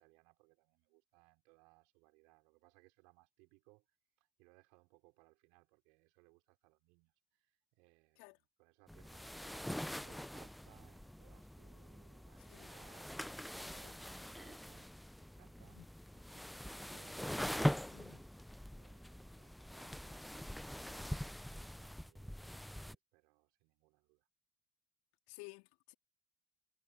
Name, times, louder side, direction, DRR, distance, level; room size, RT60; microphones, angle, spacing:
voice 1, 0.0-14.9 15.2-24.3, right 30 dB, 65° right, 4.6 m, -69 dB
sound 1, 8.9-22.9, equal, 5° left, 0.7 m, -43 dB
voice 2, 25.3-25.9, left 31 dB, 65° left, 3.1 m, -55 dB
figure-of-eight pair, 60°, 0 cm